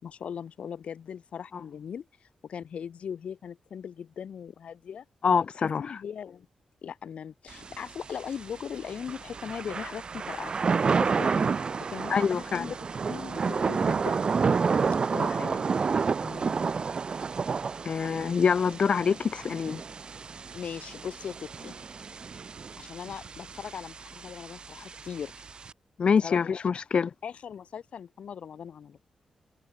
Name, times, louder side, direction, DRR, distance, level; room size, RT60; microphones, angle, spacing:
voice 1, 0.0-5.0 5.5-6.5 6.8-11.4 11.9-12.7 13.1-14.2 15.1-15.7 20.5-21.8 22.8-25.3 26.2-26.4 27.2-29.0, left 7 dB, 70° left, 3.2 m, -39 dB
voice 2, 5.2-6.0 12.1-12.7 16.2-16.5 17.8-19.8 26.0-27.1, left 6 dB, 55° left, 1.3 m, -25 dB
Thunder / Rain, 7.5-25.7, right 5 dB, 45° right, 3.0 m, -30 dB
wide cardioid pair, 110°, 2 cm